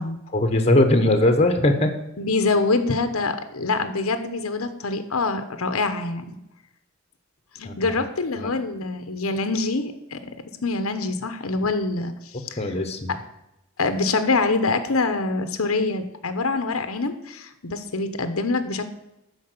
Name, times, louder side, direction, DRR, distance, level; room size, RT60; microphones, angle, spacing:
voice 1, 0.3-1.9 7.6-7.9 8.4-8.5 12.6-13.1, left 1 dB, 30° left, 6 dB, 1.2 m, -20 dB
voice 2, 2.2-6.4 7.5-10.4 10.6-12.7 13.1-13.2 13.8-18.8, left 3 dB, 85° left, 9 dB, 1.0 m, -25 dB
12.5 x 5.0 x 6.8 m, 0.90 s
head